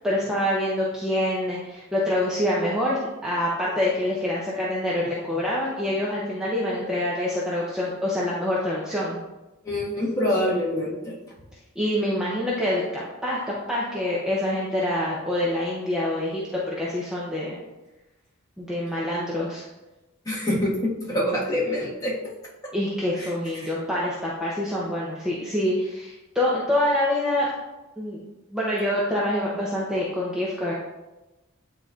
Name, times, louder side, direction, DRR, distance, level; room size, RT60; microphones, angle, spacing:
voice 1, 0.0-9.2 11.8-17.6 18.6-19.6 22.7-27.5 28.0-28.2 28.5-30.7, left 1 dB, 5° right, -6 dB, 0.7 m, -26 dB
voice 2, 9.6-11.2 20.2-22.3 22.6-22.7 23.2-23.7, left 1 dB, 15° left, -6 dB, 1.5 m, -26 dB
9.1 x 4.2 x 2.4 m, 1.1 s
head